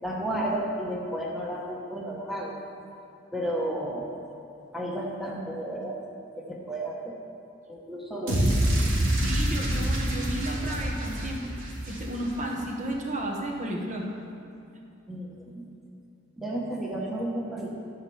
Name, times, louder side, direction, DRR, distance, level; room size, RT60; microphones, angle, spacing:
voice 1, 0.0-2.5 3.3-4.1 4.7-6.0 6.4-7.2 7.7-8.7 15.1-15.6 16.4-17.7, right 1 dB, ahead, -3 dB, 1.1 m, -32 dB
sound 1, 8.3-12.5, right 1 dB, 80° right, 2.7 m, -26 dB
voice 2, 9.2-11.4 11.9-14.0, right 1 dB, 40° right, 0 dB, 1.3 m, -33 dB
12.0 x 5.7 x 7.1 m, 2.7 s
head